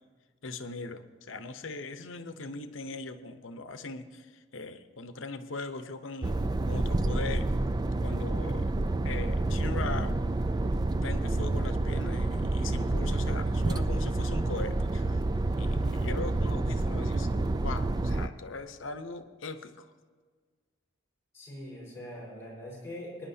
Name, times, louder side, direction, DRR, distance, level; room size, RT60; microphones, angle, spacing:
voice 1, 0.4-6.4 6.7-7.5 8.0-8.7 9.0-10.1 11.0-15.2 15.6-19.9, left 3 dB, 80° left, 9 dB, 0.8 m, -40 dB
sound 1, 6.2-18.3, right 2 dB, 20° right, 0.4 m, -28 dB
voice 2, 21.3-23.3, left 1 dB, 15° left, -6 dB, 4.6 m, -42 dB
24.0 x 10.5 x 2.8 m, 1.6 s
head